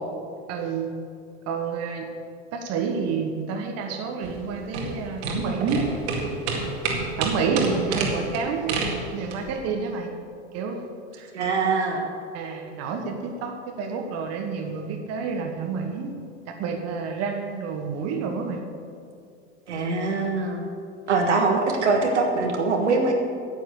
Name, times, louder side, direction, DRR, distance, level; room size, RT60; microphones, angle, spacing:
voice 1, 0.5-0.9 1.5-2.1 2.5-5.9 7.2-8.8 9.1-10.1 10.5-10.9 11.2-11.3 12.3-16.1 16.6-18.6, right 5 dB, 45° right, 4 dB, 1.4 m, -29 dB
sound 1, 4.2-9.5, right 4 dB, 65° right, 2.1 m, -29 dB
voice 2, 11.3-12.0 19.7-20.7 21.1-23.1, right 3 dB, 85° right, 2 dB, 1.5 m, -23 dB
9.4 x 9.0 x 6.6 m, 2.4 s
hypercardioid pair, 85°, 34 cm